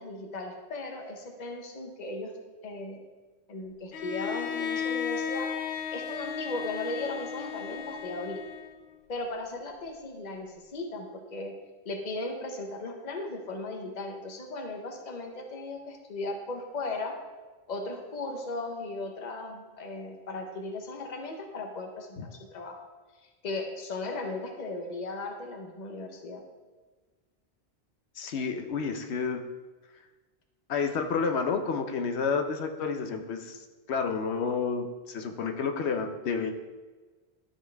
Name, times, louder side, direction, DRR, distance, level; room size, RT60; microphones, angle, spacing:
voice 1, 0.0-2.3 2.6-3.0 3.5-5.5 5.9-8.4 9.1-11.5 11.8-17.1 17.7-22.8 23.2-26.4, left 2 dB, 45° left, 2 dB, 1.0 m, -37 dB
Bowed string instrument, 3.9-8.9, left 7 dB, 70° left, 0.8 m, -34 dB
voice 2, 28.2-29.4 30.7-36.5, left 5 dB, 85° left, 6 dB, 1.0 m, -30 dB
12.5 x 4.3 x 3.4 m, 1.3 s
omnidirectional pair, 1.1 m